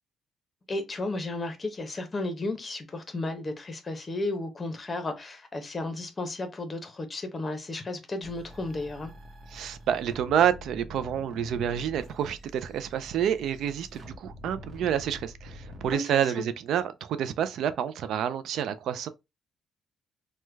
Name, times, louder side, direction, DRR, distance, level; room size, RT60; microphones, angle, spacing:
voice 1, 0.7-9.1 15.9-16.5, left 2 dB, 30° left, 0.8 m, -33 dB
sound 1, 8.2-15.9, left 1 dB, 60° right, 0.9 m, -46 dB
voice 2, 9.5-19.1, right 9 dB, 75° right, 0.3 m, -28 dB
3.1 x 2.2 x 3.3 m
cardioid pair, 90°, 0 cm